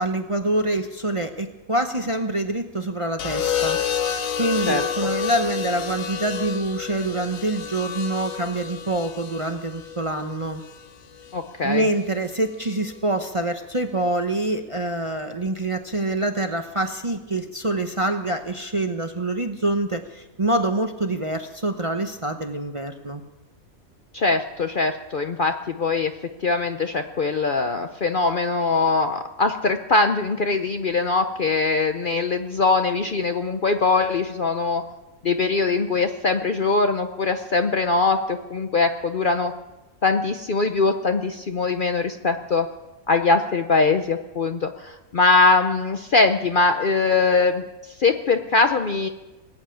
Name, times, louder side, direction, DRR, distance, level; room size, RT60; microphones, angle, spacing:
voice 1, 0.0-3.8 4.4-10.6 11.6-23.2, right 2 dB, 30° right, 6 dB, 0.7 m, -25 dB
sound 1, 3.2-11.3 12.6-13.0, left 8 dB, 75° left, 1.4 m, -30 dB
voice 2, 11.3-11.8 24.1-26.1 26.4-34.8 35.2-39.5 40.0-42.7 43.1-47.6 48.0-49.1, left 3 dB, 50° left, 7 dB, 0.7 m, -22 dB
20.0 x 8.1 x 8.6 m, 1.1 s
omnidirectional pair, 1.5 m